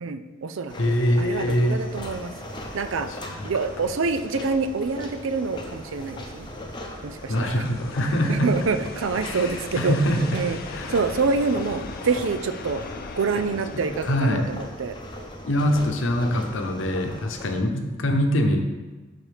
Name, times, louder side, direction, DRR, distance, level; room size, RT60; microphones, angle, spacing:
voice 1, 0.0-2.3 2.7-3.1 3.4-6.5 7.0-7.5 8.3-10.0 10.3-10.6 10.9-12.8 13.2-15.0, right 4 dB, 70° right, 9 dB, 0.5 m, -26 dB
sound 1, 0.7-17.6, left 1 dB, 20° left, 0.8 m, -38 dB
voice 2, 0.8-1.8 3.1-3.5 7.3-8.5 9.2-10.4 10.7-11.0 13.7-14.5 15.4-18.6, equal, 65° left, 4 dB, 0.8 m, -24 dB
sound 2, 6.5-14.3, left 5 dB, 45° left, 0.4 m, -41 dB
12.0 x 4.2 x 3.4 m, 1.2 s
head